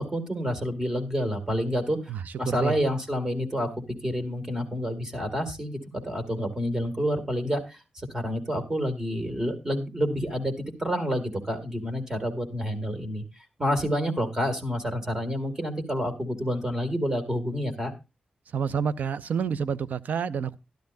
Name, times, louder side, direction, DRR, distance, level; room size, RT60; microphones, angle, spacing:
voice 1, 0.0-2.1 2.4-3.7 4.0-10.5 10.8-13.2 13.6-17.9, equal, 20° right, 2.1 m, -28 dB
voice 2, 2.1-2.8 18.5-20.6, right 7 dB, 80° right, 0.5 m, -29 dB
12.5 x 11.5 x 2.6 m
wide cardioid pair, 95°, 3 cm